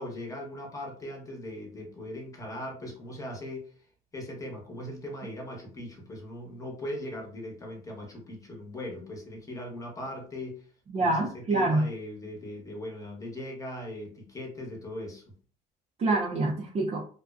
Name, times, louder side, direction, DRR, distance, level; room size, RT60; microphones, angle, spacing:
voice 1, 0.0-3.7 4.1-10.7 11.0-15.3, left 1 dB, 20° left, 0 dB, 0.9 m, -39 dB
voice 2, 10.9-11.9 16.0-17.1, right 2 dB, 40° right, -3 dB, 0.5 m, -26 dB
2.4 x 2.1 x 2.3 m, 0.43 s
cardioid pair, 110°, 17 cm